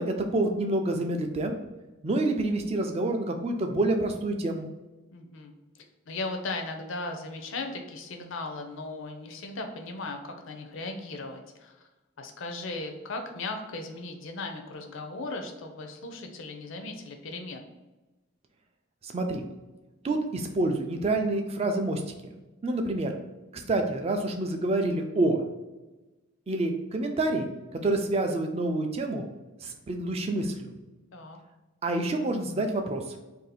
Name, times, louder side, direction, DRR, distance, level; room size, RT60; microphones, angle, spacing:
voice 1, 0.0-1.5 2.0-4.7 19.0-19.4 20.0-22.0 22.6-23.1 23.5-25.4 26.5-27.5 27.8-29.2 29.6-30.5 31.8-33.0, right 2 dB, 30° right, 5 dB, 0.3 m, -27 dB
voice 2, 5.1-5.5 6.1-11.8 12.2-17.7 31.1-31.4, left 2 dB, 60° left, 4 dB, 0.5 m, -37 dB
2.7 x 2.4 x 4.1 m, 1.1 s
head